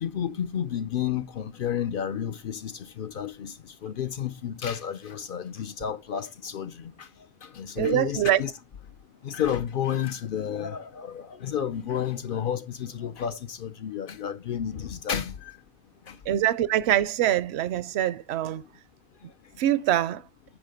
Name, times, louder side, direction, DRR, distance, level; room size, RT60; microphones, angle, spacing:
voice 1, 0.0-7.1 7.4-8.5 9.2-15.6 16.1-16.2, left 9 dB, 60° left, 0.6 m, -31 dB
voice 2, 7.8-8.4 16.3-18.6 19.6-20.2, right 12 dB, 65° right, 0.8 m, -24 dB
9.7 x 3.7 x 5.0 m
omnidirectional pair, 1.3 m